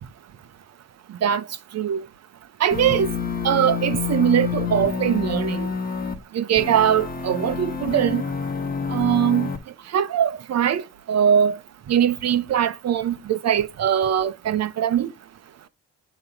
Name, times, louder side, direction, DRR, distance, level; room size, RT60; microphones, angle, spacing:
voice 1, 2.6-3.1 3.4-5.7 6.3-8.2 8.9-9.5 9.9-11.6 11.9-15.1, right 9 dB, 60° right, 0.9 m, -21 dB
sound 1, 2.7-6.2 6.6-9.6, left 6 dB, 30° left, 1.3 m, -28 dB
9.2 x 3.1 x 5.0 m
cardioid pair, 90°, 30 cm